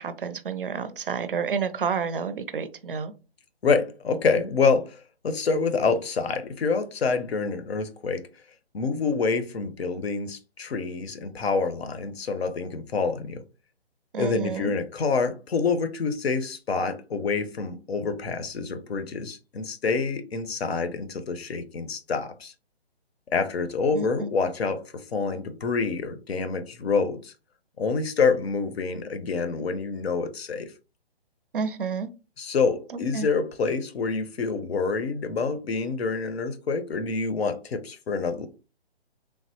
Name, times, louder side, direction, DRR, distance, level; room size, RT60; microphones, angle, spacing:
voice 1, 0.0-3.1 14.1-14.7 23.9-24.3 31.5-32.1 32.9-33.3, right 5 dB, 55° right, 0.4 m, -30 dB
voice 2, 3.6-8.3 8.7-13.4 14.2-22.5 23.3-27.3 27.8-30.7 32.4-38.5, left 4 dB, 70° left, 0.7 m, -27 dB
3.3 x 2.0 x 2.8 m
hypercardioid pair, 170°, 32 cm